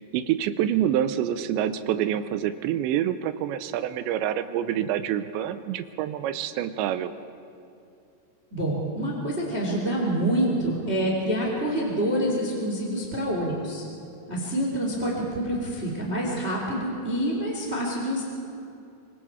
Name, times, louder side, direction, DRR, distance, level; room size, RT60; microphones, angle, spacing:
voice 1, 0.0-7.1, right 10 dB, 85° right, 11 dB, 3.0 m, -27 dB
voice 2, 8.5-13.8 14.3-18.2, right 1 dB, 15° right, -2 dB, 2.8 m, -27 dB
25.0 x 24.5 x 4.7 m, 2.6 s
omnidirectional pair, 5.2 m